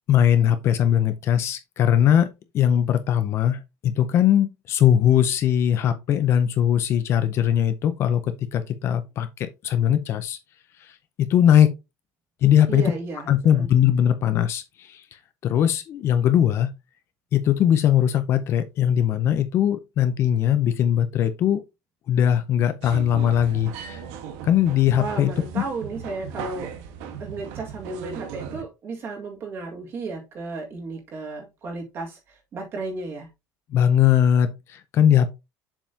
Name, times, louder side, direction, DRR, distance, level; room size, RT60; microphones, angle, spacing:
voice 1, 0.1-10.4 10.8-10.9 11.3-11.7 12.4-12.9 13.3-15.0 15.4-16.7 17.3-21.6 22.1-24.0 24.4-25.6 33.7-35.3, left 10 dB, 35° left, 0.6 m, -20 dB
voice 2, 12.7-13.7 25.0-26.7 27.2-33.3, right 3 dB, 35° right, 1.9 m, -34 dB
sound 1, 22.8-28.6, right 7 dB, 90° right, 1.4 m, -37 dB
7.3 x 5.3 x 2.8 m
cardioid pair, 175°, 7 cm